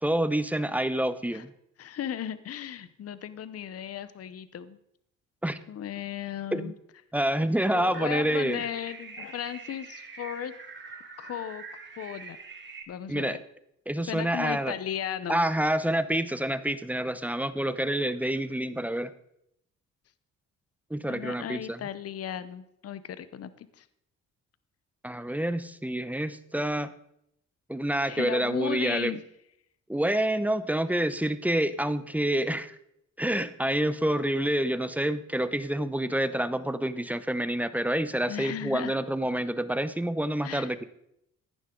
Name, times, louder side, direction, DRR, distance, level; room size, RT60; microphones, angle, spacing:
voice 1, 0.0-1.5 5.4-5.6 6.5-6.7 7.1-8.6 13.1-13.4 13.9-14.7 15.3-19.1 20.9-21.8 25.0-26.9 27.7-29.2 29.9-32.8 33.2-40.8, right 1 dB, 5° right, 13 dB, 0.7 m, -28 dB
voice 2, 1.8-4.8 5.7-6.7 7.7-10.5 11.2-11.6 12.0-12.4 12.9-13.4 14.1-15.5 21.1-23.9 28.0-29.2 38.3-39.0 40.4-40.7, left 10 dB, 55° left, 14 dB, 0.8 m, -36 dB
sound 1, 7.9-12.8, right 4 dB, 40° right, 1.9 m, -44 dB
15.0 x 10.5 x 3.8 m, 0.77 s
cardioid pair, 90°, 30 cm